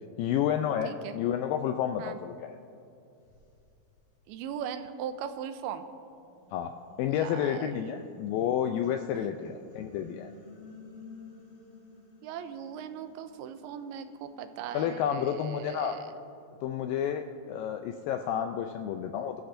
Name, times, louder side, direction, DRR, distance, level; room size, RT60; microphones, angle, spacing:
voice 1, 0.2-2.6 6.5-6.7 7.0-10.3 14.7-15.9 16.6-19.4, left 9 dB, 85° left, 6 dB, 2.0 m, -30 dB
voice 2, 0.8-1.2 2.0-2.2 4.3-5.9 7.1-8.1 9.4-9.5 12.2-16.1, right 8 dB, 90° right, 9 dB, 2.6 m, -39 dB
sound 1, 2.5-2.6 3.2-5.5 6.0-17.3, left 3 dB, 60° left, 5.1 m, -55 dB
23.5 x 13.5 x 2.6 m, 2.6 s
omnidirectional pair, 4.5 m